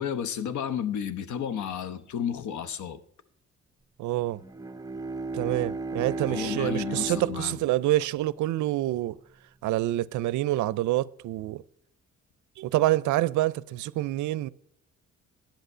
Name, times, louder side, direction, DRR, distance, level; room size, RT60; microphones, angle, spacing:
voice 1, 0.0-3.0 6.3-7.6, left 8 dB, 70° left, 0.9 m, -32 dB
voice 2, 4.0-4.4 5.3-9.2 9.6-11.6 12.6-14.5, right 15 dB, 75° right, 0.5 m, -27 dB
Bowed string instrument, 4.3-8.9, right 3 dB, 10° right, 0.5 m, -35 dB
10.5 x 8.0 x 5.5 m
cardioid pair, 90°, 30 cm